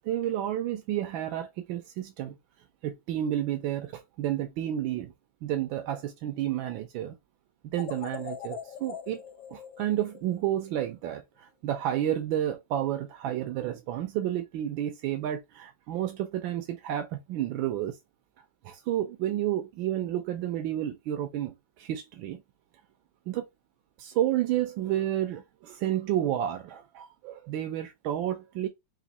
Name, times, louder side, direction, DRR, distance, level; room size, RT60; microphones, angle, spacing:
voice 1, 0.0-2.3 2.8-5.1 5.4-7.2 7.7-9.2 9.5-18.0 18.6-22.4 23.3-23.5 24.0-28.7, right 12 dB, 90° right, 1.4 m, -31 dB
sound 1, 7.7-10.9, left 9 dB, 80° left, 1.3 m, -42 dB
4.1 x 2.6 x 3.9 m
omnidirectional pair, 2.1 m